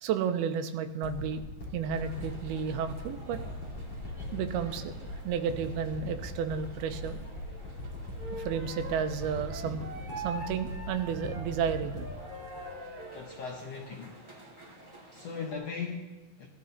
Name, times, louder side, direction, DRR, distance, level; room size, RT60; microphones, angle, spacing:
voice 1, 0.0-1.4 1.7-3.4 4.3-7.2 8.3-9.8 10.2-12.1 12.9-13.0 14.7-14.8, right 7 dB, 85° right, 8 dB, 2.6 m, -32 dB
sound 1, 1.0-13.8 14.4-14.5, left 1 dB, 35° left, 4.3 m, -40 dB
sound 2, 1.9-15.6, equal, 15° right, 1.2 m, -52 dB
Wind instrument woodwind instrument, 8.2-13.2, right 2 dB, 45° right, 5.8 m, -43 dB
voice 2, 12.7-14.2 15.1-16.5, left 5 dB, 80° left, -1 dB, 1.4 m, -39 dB
17.0 x 12.5 x 2.8 m, 1.1 s
omnidirectional pair, 4.5 m